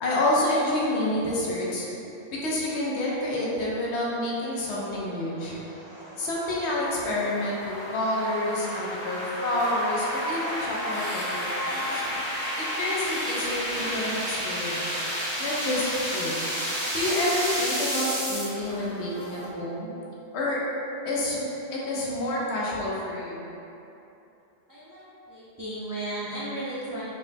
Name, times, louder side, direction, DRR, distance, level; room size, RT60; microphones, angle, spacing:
voice 1, 0.0-1.9 2.4-5.5 6.2-12.0 12.6-15.0 15.4-15.8 16.1-16.4 16.9-19.9 20.3-20.6 21.0-23.5, left 1 dB, 85° left, -5 dB, 1.0 m, -28 dB
sound 1, 4.5-18.5, equal, 85° right, 1.4 m, -32 dB
sound 2, 9.6-19.5, equal, 40° left, 0.7 m, -38 dB
voice 2, 24.7-27.0, right 1 dB, 25° right, -10 dB, 0.4 m, -35 dB
5.0 x 2.1 x 3.3 m, 2.9 s
omnidirectional pair, 1.1 m